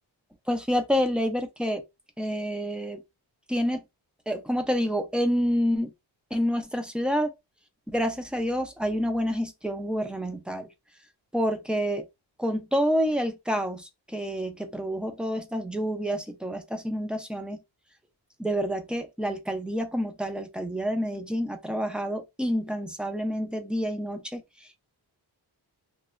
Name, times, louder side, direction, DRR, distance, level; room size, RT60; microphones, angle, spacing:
voice 1, 0.5-1.8 2.2-3.0 3.5-3.8 4.3-5.9 6.3-7.3 7.9-10.7 11.3-12.1 12.4-17.6 18.4-24.8, equal, ahead, 0.4 m, -28 dB
3.0 x 2.0 x 2.4 m
wide cardioid pair, 120°, 42 cm